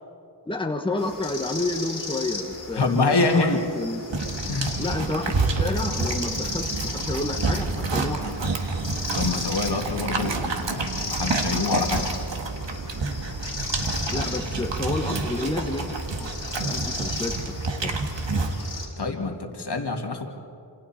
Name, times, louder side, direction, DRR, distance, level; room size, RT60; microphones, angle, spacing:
voice 1, 0.4-4.0 4.8-8.5 14.1-16.3 16.6-17.9, left 2 dB, 10° left, 3 dB, 1.6 m, -30 dB
sound 1, 1.0-18.9, left 3 dB, 45° left, 5.2 m, -36 dB
voice 2, 2.7-3.6 4.5-4.8 9.1-12.1 14.1-14.3 19.0-20.3, left 3 dB, 65° left, 3 dB, 2.4 m, -26 dB
sound 2, 4.1-18.6, right 3 dB, 80° right, 1.9 m, -28 dB
28.0 x 27.5 x 4.4 m, 2.6 s
wide cardioid pair, 75°, 44 cm